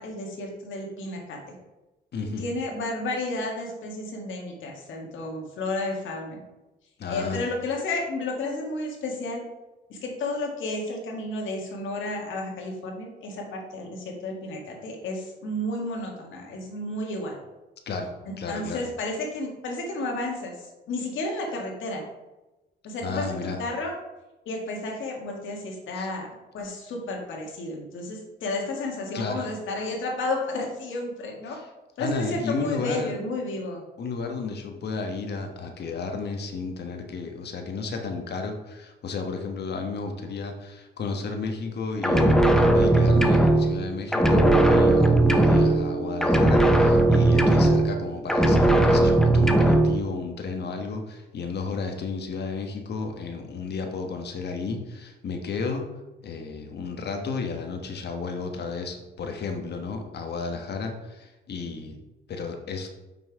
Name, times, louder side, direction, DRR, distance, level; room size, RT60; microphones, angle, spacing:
voice 1, 0.0-1.4 2.4-6.4 7.1-9.4 9.9-17.4 18.3-22.0 22.8-23.9 24.5-26.3 26.5-31.6 32.0-33.8, left 2 dB, 75° left, 0 dB, 2.0 m, -32 dB
voice 2, 2.1-2.4 7.0-7.4 17.9-18.9 23.0-23.6 25.9-26.1 29.1-29.5 31.5-31.7 32.0-33.1 34.0-55.8 56.2-62.0 62.3-62.9, left 4 dB, 55° left, 4 dB, 1.4 m, -32 dB
sound 1, 42.0-43.9 44.1-46.0 46.2-48.0 48.3-50.0, right 1 dB, 5° left, 0.8 m, -18 dB
Mallet percussion, 44.3-48.7, right 3 dB, 15° right, 2.2 m, -31 dB
5.9 x 5.7 x 4.8 m, 1.0 s
cardioid pair, 90°, 20 cm